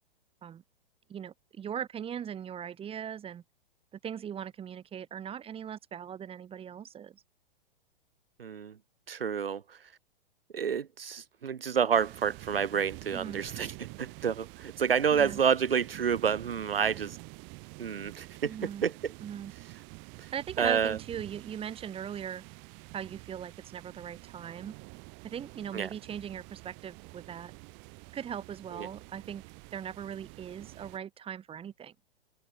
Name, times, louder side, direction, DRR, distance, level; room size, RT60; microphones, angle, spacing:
voice 1, 1.1-3.4 4.0-7.2 13.1-13.4 15.1-15.4 18.4-18.9 19.2-19.5 20.3-22.4 22.9-24.7 25.2-27.5 28.1-29.4 29.7-31.9, right 8 dB, 20° right, 2.9 m, -39 dB
voice 2, 8.4-8.8 9.1-9.8 10.5-17.2 17.8-19.1 20.2-20.3 20.6-21.0 25.7-25.9 28.7-28.9, right 7 dB, 75° right, 1.7 m, -29 dB
sound 1, 11.9-31.0, right 32 dB, 40° right, 7.7 m, -48 dB
figure-of-eight pair, 110°, 30 cm